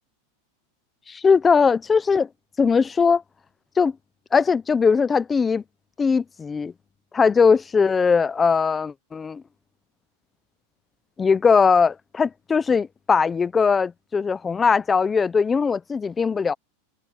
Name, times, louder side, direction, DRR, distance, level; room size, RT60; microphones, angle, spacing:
voice 1, 1.1-2.3 2.6-3.2 3.8-4.0 4.3-5.6 6.0-6.7 7.1-9.4 11.2-16.5, left 5 dB, 10° left, 0.5 m, -20 dB
supercardioid pair, 170°, 0 cm